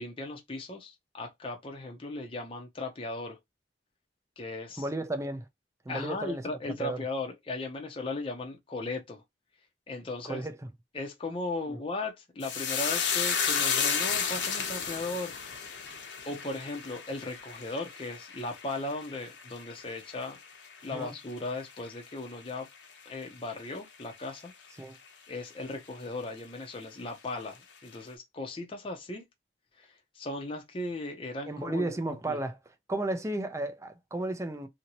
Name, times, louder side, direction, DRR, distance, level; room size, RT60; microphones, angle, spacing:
voice 1, 0.0-3.4 4.4-4.8 5.9-9.2 9.9-10.5 10.9-15.3 16.3-20.4 20.8-22.7 23.1-24.5 25.3-29.2 29.8-29.9 30.1-31.9 32.3-32.4, left 2 dB, 30° left, 0.7 m, -37 dB
voice 2, 4.8-5.5 5.9-6.5 6.8-7.0 10.3-10.6 11.7-11.8 20.9-21.1 24.8-25.0 31.4-32.6 32.9-34.7, right 1 dB, 15° right, 0.5 m, -33 dB
sound 1, 12.4-21.0 21.3-22.0 22.3-22.5, left 6 dB, 80° left, 0.8 m, -32 dB
2.8 x 2.7 x 2.9 m
head